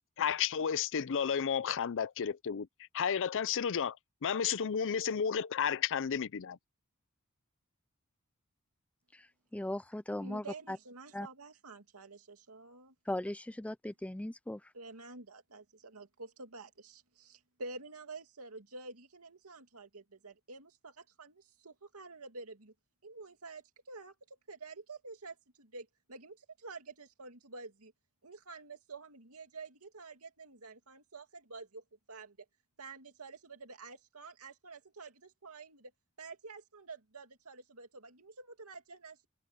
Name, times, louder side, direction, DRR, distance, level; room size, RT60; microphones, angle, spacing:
voice 1, 0.2-2.7 2.9-4.0 4.2-6.6, left 7 dB, 60° left, 0.5 m, -32 dB
voice 2, 9.1-10.8 11.1-11.3 13.1-14.7, left 1 dB, 5° left, 0.4 m, -38 dB
voice 3, 10.2-12.9 14.7-22.7 23.0-27.9 28.2-32.4 32.8-35.9 36.2-39.3, right 3 dB, 80° right, 2.5 m, -49 dB
head